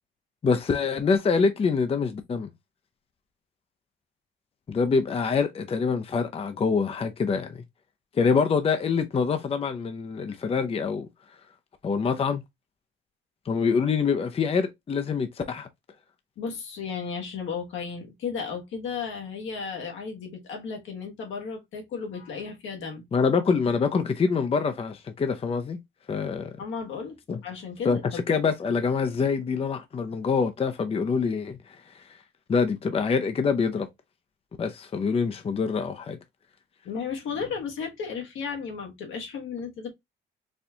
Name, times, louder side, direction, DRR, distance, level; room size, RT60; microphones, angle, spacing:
voice 1, 0.4-2.5 4.7-7.6 8.1-11.1 11.8-12.4 13.5-15.7 23.1-25.8 26.1-26.5 27.3-27.4 27.8-31.6 32.5-33.9 34.6-36.2, left 5 dB, 30° left, 0.5 m, -25 dB
voice 2, 16.4-23.0 26.6-28.2 36.8-39.9, left 6 dB, 75° left, 1.2 m, -34 dB
4.2 x 2.3 x 2.7 m
cardioid pair, 90°, 20 cm